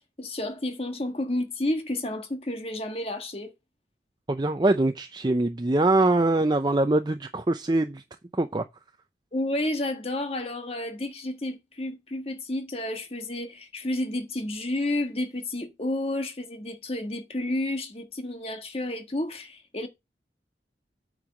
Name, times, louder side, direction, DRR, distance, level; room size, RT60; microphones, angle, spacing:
voice 1, 0.2-3.5 9.3-19.9, left 1 dB, 35° left, 1.5 m, -31 dB
voice 2, 4.3-8.0 8.3-8.6, right 2 dB, 25° right, 0.5 m, -23 dB
8.9 x 4.7 x 6.2 m
head